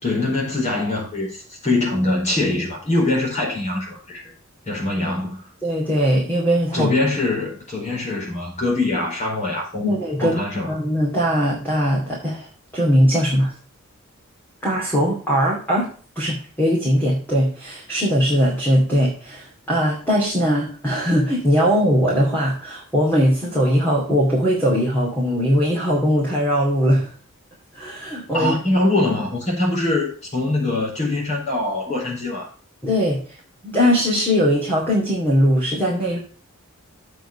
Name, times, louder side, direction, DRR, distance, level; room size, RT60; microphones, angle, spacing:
voice 1, 0.0-4.3 4.6-5.5 6.7-10.7 28.3-32.5, left 2 dB, 35° left, -2 dB, 4.6 m, -23 dB
voice 2, 5.6-6.9 9.8-10.4 10.7-12.5 12.7-13.5 14.6-15.9 16.2-27.1 27.7-28.5 32.8-33.2 33.6-36.2, equal, 10° left, -4 dB, 2.6 m, -20 dB
7.9 x 5.3 x 6.9 m, 0.41 s
head